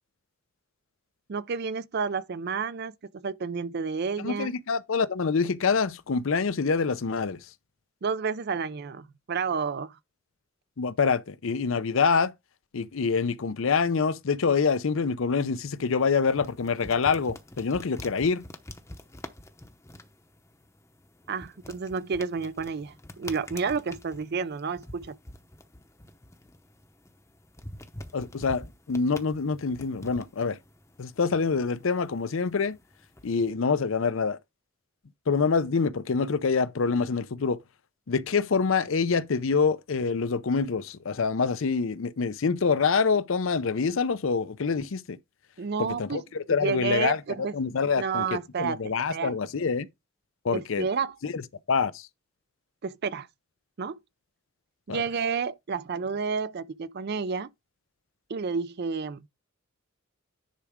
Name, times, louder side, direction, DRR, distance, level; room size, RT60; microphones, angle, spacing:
voice 1, 1.3-4.5 8.0-10.0 21.3-25.2 45.6-46.2 46.6-47.5 48.0-49.3 50.5-51.2 52.8-53.3 53.8-54.0 54.9-57.5 58.3-59.2, right 5 dB, 50° right, 0.4 m, -30 dB
voice 2, 4.2-7.4 10.8-12.3 12.7-18.4 28.1-30.6 31.0-32.8 33.2-34.4 35.3-37.6 38.1-45.2 45.8-47.2 47.5-48.2 48.6-49.9 50.4-50.9 51.2-51.4 51.7-52.1 54.9-55.0, left 5 dB, 65° left, 0.6 m, -26 dB
sound 1, 15.3-33.5, left 1 dB, 15° left, 0.8 m, -47 dB
10.0 x 4.8 x 3.6 m
head